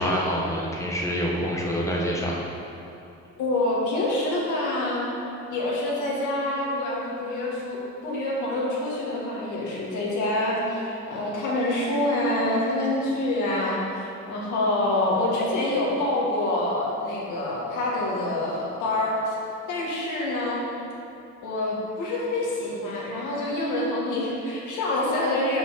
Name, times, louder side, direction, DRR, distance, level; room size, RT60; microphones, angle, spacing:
voice 1, 0.0-2.3, equal, 10° left, -3 dB, 1.3 m, -26 dB
voice 2, 3.4-5.1 5.5-19.3 19.7-20.6 21.4-25.6, left 1 dB, 85° left, -4 dB, 1.6 m, -26 dB
5.5 x 5.4 x 5.7 m, 2.7 s
cardioid pair, 90°, 30 cm